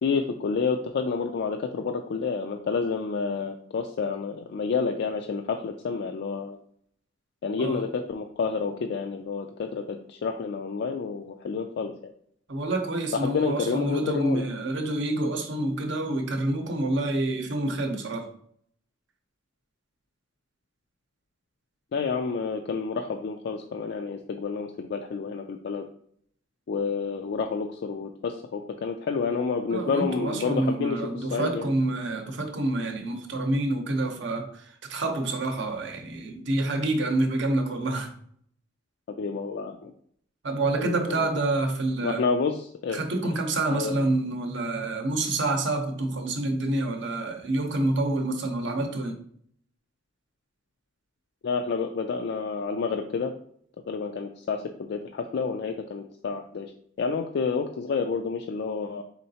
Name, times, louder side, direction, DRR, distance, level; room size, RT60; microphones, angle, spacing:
voice 1, 0.0-6.6 7.4-12.1 13.1-14.5 21.9-25.8 26.7-31.7 39.2-39.9 40.7-41.3 42.0-43.0 43.7-44.0 51.4-53.3 53.9-56.7 57.0-59.0, left 5 dB, 60° left, 0.3 m, -29 dB
voice 2, 12.5-18.3 29.7-38.1 40.4-42.2 42.9-49.2, right 2 dB, 65° right, 0.7 m, -27 dB
4.3 x 3.8 x 2.8 m
head